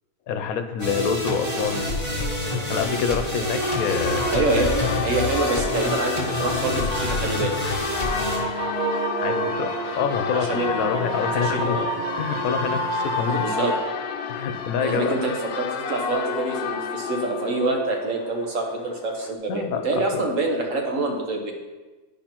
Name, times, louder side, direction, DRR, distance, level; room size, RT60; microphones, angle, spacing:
voice 1, 0.3-1.9 2.7-4.3 4.5-4.7 9.2-11.9 12.2-13.5 14.3-15.1 19.5-20.2, left 7 dB, 80° left, 8 dB, 1.1 m, -27 dB
sound 1, 0.8-8.4, left 1 dB, 25° right, 1.5 m, -27 dB
Church bell, 3.6-19.3, left 6 dB, 65° left, 0.6 m, -31 dB
voice 2, 4.3-4.7 5.0-7.6 10.3-10.9 11.4-11.8 13.3-13.7 14.8-21.5, right 2 dB, 65° right, 1 dB, 1.3 m, -26 dB
sound 2, 6.9-13.8, right 2 dB, 80° right, 1.5 m, -30 dB
10.5 x 5.1 x 2.9 m, 1.2 s
omnidirectional pair, 1.5 m